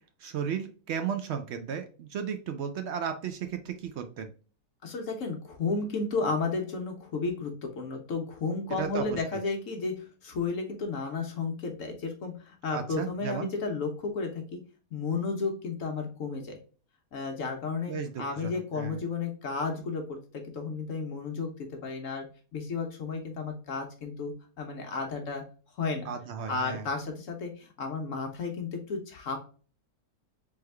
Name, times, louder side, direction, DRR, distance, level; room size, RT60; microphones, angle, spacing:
voice 1, 0.2-4.3 8.8-9.2 12.7-13.5 17.9-19.0 26.0-26.9, right 7 dB, 70° right, 7 dB, 0.6 m, -34 dB
voice 2, 4.8-14.6 14.9-16.6 17.1-21.5 21.8-22.2 22.5-25.4 25.8-26.0 26.5-29.4, left 4 dB, 65° left, 3 dB, 1.1 m, -33 dB
3.5 x 3.3 x 3.2 m, 0.39 s
omnidirectional pair, 1.6 m